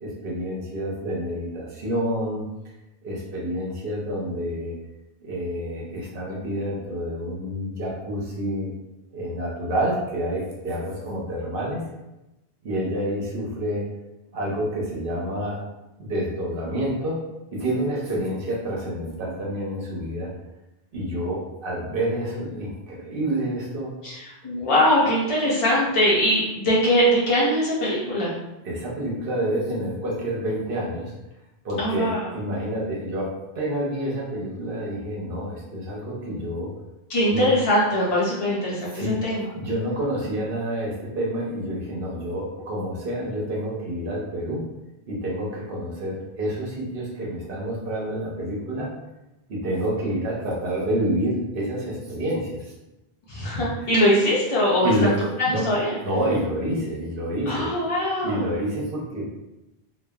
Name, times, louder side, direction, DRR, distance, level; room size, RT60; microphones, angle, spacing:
voice 1, 0.0-2.5 3.0-4.7 5.2-8.7 9.1-11.8 12.6-13.9 14.3-15.6 16.0-17.2 17.5-20.3 20.9-23.9 28.6-31.1 31.6-36.7 37.3-37.5 38.9-39.2 39.6-44.6 45.1-48.9 49.5-52.7 54.8-55.2 55.5-55.7 56.0-57.7 58.2-59.3, right 1 dB, 60° right, -4 dB, 0.9 m, -28 dB
voice 2, 24.0-28.4 31.8-32.3 37.1-39.4 53.3-55.1 55.4-56.0 57.5-58.6, equal, 45° left, -6 dB, 0.4 m, -22 dB
3.0 x 2.0 x 2.3 m, 0.97 s
omnidirectional pair, 1.1 m